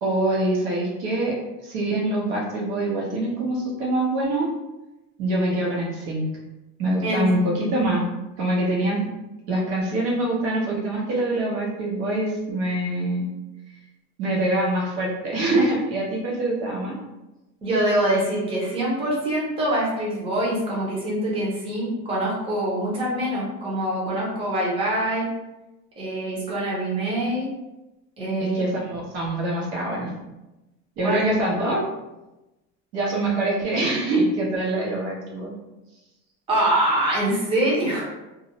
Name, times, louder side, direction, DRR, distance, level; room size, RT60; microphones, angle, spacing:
voice 1, 0.0-1.3 1.6-4.5 5.2-6.3 6.8-8.0 8.4-9.0 9.5-13.3 14.2-16.9 28.4-30.1 31.0-31.8 32.9-35.5, right 1 dB, 85° right, -3 dB, 1.0 m, -24 dB
voice 2, 17.6-25.3 26.0-27.5 28.2-28.6 31.0-31.5 36.5-38.1, right 1 dB, 15° right, -5 dB, 0.6 m, -24 dB
2.5 x 2.0 x 2.8 m, 1.0 s
cardioid pair, 155°, 32 cm